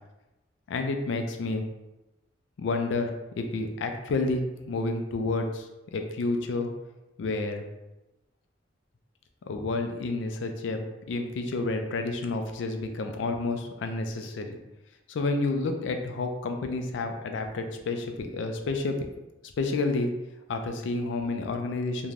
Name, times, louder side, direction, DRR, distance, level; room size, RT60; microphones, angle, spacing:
voice 1, 0.7-1.6 2.6-3.1 3.4-6.7 7.2-7.6 9.5-14.6 15.1-19.0 19.6-20.1 20.5-22.1, left 3 dB, 75° left, 6 dB, 0.3 m, -30 dB
3.1 x 2.1 x 2.4 m, 0.99 s
head